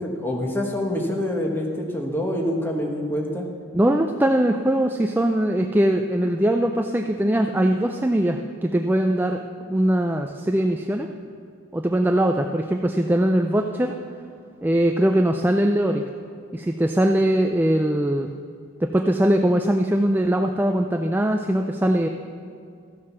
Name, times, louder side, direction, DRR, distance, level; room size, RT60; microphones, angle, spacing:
voice 1, 0.0-3.4, left 1 dB, 10° left, 1 dB, 1.3 m, -26 dB
voice 2, 3.7-9.4 9.7-11.1 11.7-13.9 14.6-16.0 16.5-18.3 18.8-22.1, right 1 dB, 10° right, 4 dB, 0.3 m, -21 dB
14.0 x 7.4 x 6.0 m, 2.3 s
head